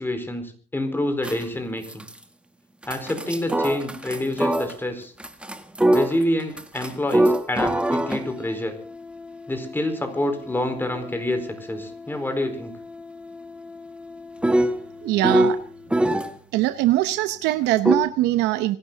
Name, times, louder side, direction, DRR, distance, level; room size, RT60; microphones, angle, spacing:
voice 1, 0.0-2.1 2.8-5.1 5.9-8.7 9.5-12.7, left 1 dB, 10° left, 6 dB, 4.5 m, -27 dB
sound 1, 1.2-1.5 1.8-2.2 2.8-4.8 5.2-16.3 17.8-18.0, right 1 dB, 5° right, 1.5 m, -26 dB
voice 2, 15.0-15.6 16.5-18.8, right 15 dB, 90° right, 12 dB, 0.8 m, -22 dB
25.5 x 12.5 x 4.0 m, 0.40 s
cardioid pair, 110°, 17 cm